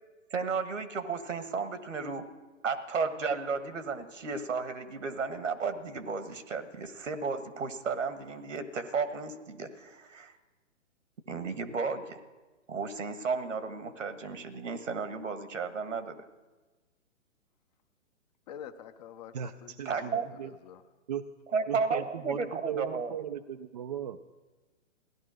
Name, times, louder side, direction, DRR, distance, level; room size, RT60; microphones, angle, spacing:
voice 1, 0.3-2.3 2.6-10.3 11.3-12.2 12.7-16.1 19.8-20.3 21.5-23.2, right 5 dB, 75° right, 1.5 m, -33 dB
voice 2, 18.5-20.8, left 9 dB, 35° left, 0.7 m, -47 dB
voice 3, 19.3-20.5 21.1-21.2 21.7-24.2, right 9 dB, 35° right, 0.4 m, -37 dB
16.0 x 11.0 x 6.2 m
figure-of-eight pair, 130°, 38 cm